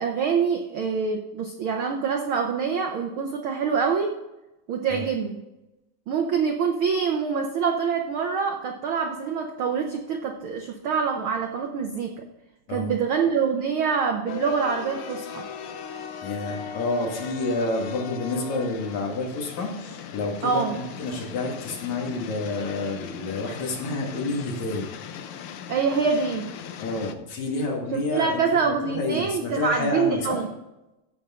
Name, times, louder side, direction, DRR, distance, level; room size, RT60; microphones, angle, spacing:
voice 1, 0.0-4.1 4.7-5.4 6.1-12.3 12.7-15.5 20.4-20.8 25.7-26.5 27.9-30.5, right 6 dB, 80° right, 4 dB, 1.2 m, -25 dB
sound 1, 14.3-27.1, left 7 dB, 85° left, 1.2 m, -38 dB
voice 2, 16.2-24.9 26.8-30.4, left 2 dB, 70° left, 0 dB, 3.2 m, -29 dB
15.0 x 6.3 x 3.7 m, 0.96 s
omnidirectional pair, 3.4 m